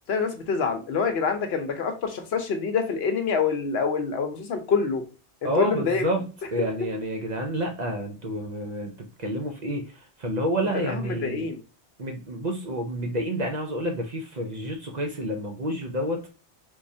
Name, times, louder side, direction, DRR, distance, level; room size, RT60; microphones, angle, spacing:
voice 1, 0.1-5.0 5.4-6.0 10.8-11.6, left 5 dB, 70° left, 6 dB, 0.9 m, -26 dB
voice 2, 5.4-8.9 9.2-11.5 12.0-16.2, equal, 45° right, 3 dB, 0.7 m, -29 dB
3.6 x 3.1 x 2.6 m, 0.33 s
omnidirectional pair, 1.1 m